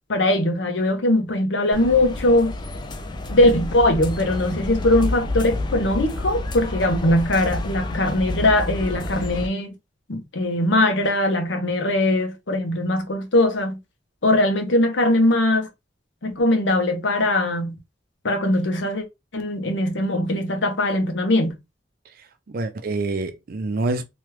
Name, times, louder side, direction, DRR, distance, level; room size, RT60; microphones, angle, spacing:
voice 1, 0.1-2.5 3.3-9.7 10.1-13.8 14.2-15.7 16.2-17.8 18.2-19.0 19.3-21.6, left 1 dB, 75° left, 0.7 m, -21 dB
sound 1, 1.7-9.5, left 1 dB, 25° left, 0.3 m, -29 dB
voice 2, 22.2-24.0, right 2 dB, 50° right, 0.4 m, -27 dB
3.0 x 2.3 x 3.1 m
head